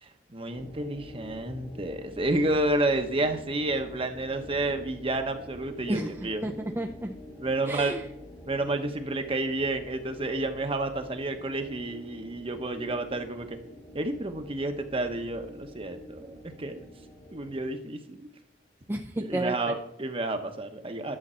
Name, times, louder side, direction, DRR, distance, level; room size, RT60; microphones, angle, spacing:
voice 1, 0.0-6.5 7.4-8.0 8.5-13.6 13.9-16.8 17.3-18.3 19.3-21.2, right 2 dB, 30° right, 7 dB, 1.0 m, -30 dB
sound 1, 0.6-17.6, left 1 dB, 20° left, 1.2 m, -47 dB
voice 2, 5.9-7.2 7.6-8.1 18.9-19.7, right 1 dB, 15° right, 1 dB, 0.5 m, -32 dB
11.0 x 7.4 x 4.4 m, 0.79 s
head